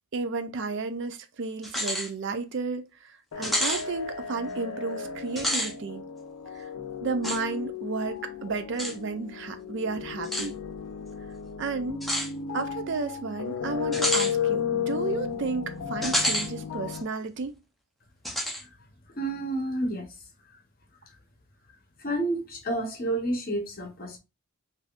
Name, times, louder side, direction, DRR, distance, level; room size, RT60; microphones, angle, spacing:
voice 1, 0.1-6.0 6.5-6.7 7.0-10.5 11.6-12.1 12.5-17.5, right 4 dB, 55° right, 0.4 m, -32 dB
sound 1, 1.6-2.1 2.5-2.6 3.4-3.8 5.3-5.7 7.2-7.4 8.8-8.9 10.2-10.5 12.0-12.3 13.9-14.3 16.0-16.5 16.9-17.0 18.2-18.6, equal, ahead, 0.6 m, -28 dB
sound 2, 3.3-17.0, left 7 dB, 85° left, 0.6 m, -34 dB
voice 2, 19.2-20.1 22.0-24.2, right 1 dB, 40° left, 0.9 m, -30 dB
3.4 x 2.7 x 2.4 m
head